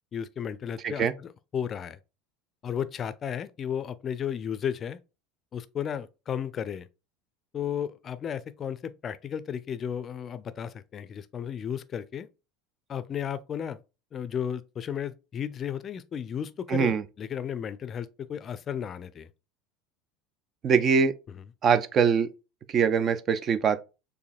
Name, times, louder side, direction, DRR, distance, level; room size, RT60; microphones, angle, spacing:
voice 1, 0.1-2.0 2.6-5.0 5.5-6.9 7.5-12.3 12.9-13.8 14.1-19.3, left 8 dB, 35° left, 0.5 m, -34 dB
voice 2, 16.7-17.0 20.6-21.1 21.6-22.3 22.7-23.8, right 6 dB, 40° right, 0.5 m, -23 dB
6.7 x 2.6 x 2.5 m
figure-of-eight pair, 70°, 0 cm